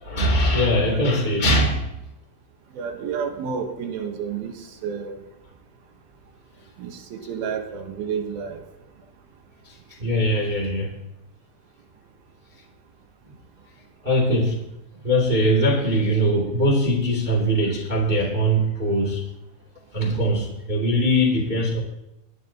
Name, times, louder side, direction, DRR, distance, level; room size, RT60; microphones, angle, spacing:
voice 1, 0.0-1.9 9.6-11.0 14.0-14.6 14.9-19.2 19.9-21.8, equal, 15° right, -2 dB, 1.5 m, -21 dB
voice 2, 2.7-5.2 6.8-8.6, right 6 dB, 65° right, 4 dB, 2.6 m, -30 dB
27.5 x 9.3 x 2.9 m, 0.93 s
omnidirectional pair, 5.6 m